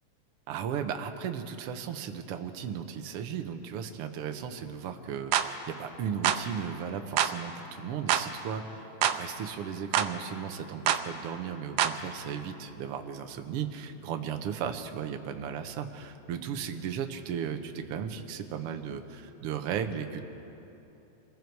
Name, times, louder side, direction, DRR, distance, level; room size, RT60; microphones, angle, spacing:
voice 1, 0.5-20.2, right 8 dB, 65° right, 6 dB, 1.6 m, -36 dB
sound 1, 5.3-5.5 6.2-6.4 7.2-7.4 8.1-8.3 9.0-9.2 9.9-10.1 10.9-11.0 11.8-12.0, right 10 dB, 90° right, 2.2 m, -25 dB
26.5 x 21.5 x 4.7 m, 2.9 s
omnidirectional pair, 3.6 m